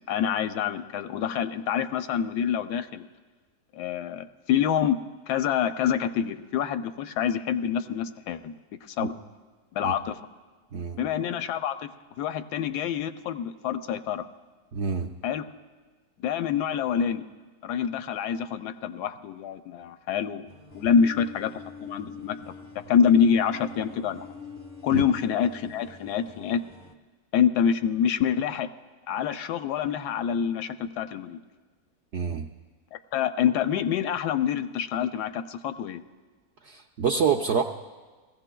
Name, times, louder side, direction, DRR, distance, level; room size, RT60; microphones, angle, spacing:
voice 1, 0.1-3.1 3.7-5.0 5.3-8.5 9.0-9.1 9.7-10.2 11.0-11.9 12.2-14.2 15.2-15.4 16.2-17.2 17.6-20.5 20.7-22.3 22.7-24.3 24.8-26.6 27.3-28.7 29.1-31.4 33.1-36.0, left 8 dB, 90° left, 9 dB, 1.2 m, -26 dB
voice 2, 14.7-15.1 24.9-25.0 32.1-32.5 36.7-37.6, right 6 dB, 70° right, 2 dB, 0.6 m, -26 dB
sound 1, 20.5-26.9, left 5 dB, 5° right, 0.5 m, -45 dB
21.0 x 15.5 x 2.3 m, 1.4 s
omnidirectional pair, 1.7 m